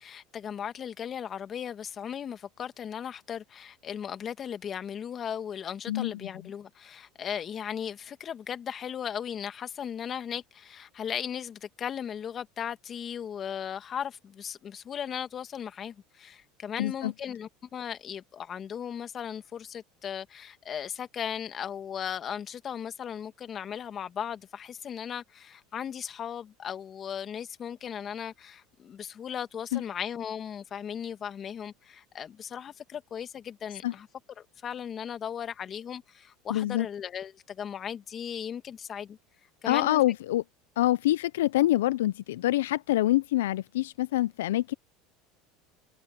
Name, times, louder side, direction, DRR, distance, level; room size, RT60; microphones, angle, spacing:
voice 1, 0.0-34.1 34.4-39.2 39.6-40.0, left 8 dB, 35° left, 1.9 m, -37 dB
voice 2, 5.9-6.3 16.8-17.1 29.7-29.8 33.8-33.9 36.5-36.9 39.7-40.4 40.8-44.7, left 15 dB, 90° left, 0.4 m, -26 dB
supercardioid pair, 105°, 0 cm